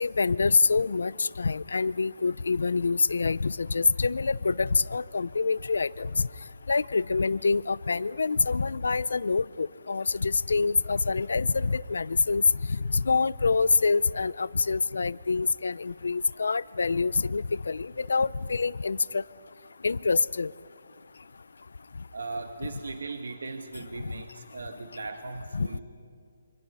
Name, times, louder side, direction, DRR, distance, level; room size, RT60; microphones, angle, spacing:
voice 1, 0.0-6.1 6.7-12.4 12.7-19.2 19.8-20.5 25.5-25.8, left 4 dB, 90° left, 20 dB, 0.6 m, -26 dB
voice 2, 22.1-25.8, right 3 dB, 85° right, 6 dB, 1.5 m, -38 dB
28.0 x 25.5 x 5.6 m, 2.2 s
hypercardioid pair, 180°, 0 cm